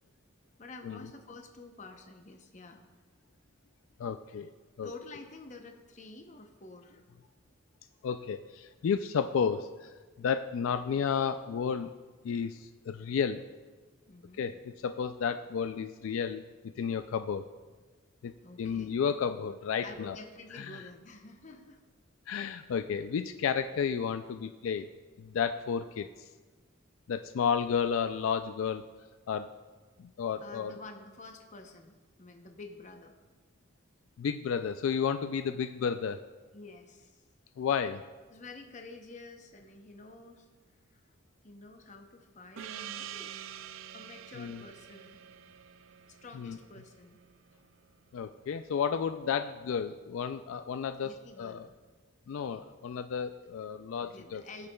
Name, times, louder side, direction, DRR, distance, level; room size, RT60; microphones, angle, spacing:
voice 1, 0.6-2.8 4.8-7.0 14.1-14.5 18.4-18.9 19.8-21.8 30.4-33.1 36.5-37.2 38.3-40.5 40.9-41.0 41.4-43.5 43.9-45.2 46.1-47.2 51.0-51.7 54.0-54.7, left 3 dB, 35° left, 4 dB, 0.7 m, -49 dB
voice 2, 4.0-4.5 4.8-4.9 8.0-11.9 12.2-13.4 14.4-14.6 14.8-16.4 16.8-17.4 18.2-18.3 18.6-20.2 20.5-20.8 22.3-24.9 25.2-26.1 27.1-28.8 29.3-29.5 30.0-30.7 34.2-36.2 37.6-38.0 44.4-44.6 46.4-46.6 48.1-51.7 52.3-54.4, left 7 dB, 75° left, 9 dB, 0.3 m, -32 dB
Gong, 42.6-47.6, right 10 dB, 70° right, 0.3 m, -46 dB
17.5 x 6.7 x 2.3 m, 1.3 s
head